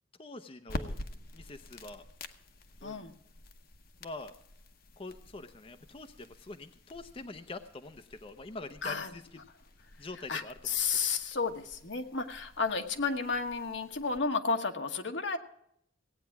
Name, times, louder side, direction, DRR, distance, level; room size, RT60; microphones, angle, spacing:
voice 1, 0.2-0.9 1.3-2.0 2.8-3.1 4.0-4.3 5.0-9.4 10.0-10.8, left 2 dB, 30° left, 7 dB, 0.7 m, -45 dB
sound 1, 0.6-14.2, left 1 dB, 55° left, 1.0 m, -48 dB
voice 2, 2.8-3.1 8.8-9.1 10.3-15.4, left 5 dB, 75° left, 5 dB, 1.3 m, -32 dB
17.0 x 9.1 x 5.8 m, 0.72 s
head